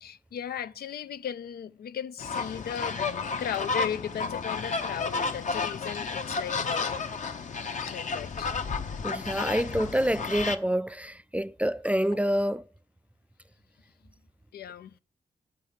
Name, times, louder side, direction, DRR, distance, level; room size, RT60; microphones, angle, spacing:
voice 1, 0.0-3.0 3.4-6.9 7.8-8.5 14.5-15.0, left 8 dB, 80° left, 0.5 m, -36 dB
sound 1, 2.2-10.6, left 4 dB, 50° left, 0.8 m, -32 dB
voice 2, 9.0-12.6, equal, 10° right, 0.3 m, -27 dB
6.7 x 5.6 x 7.3 m
cardioid pair, 65°, 16 cm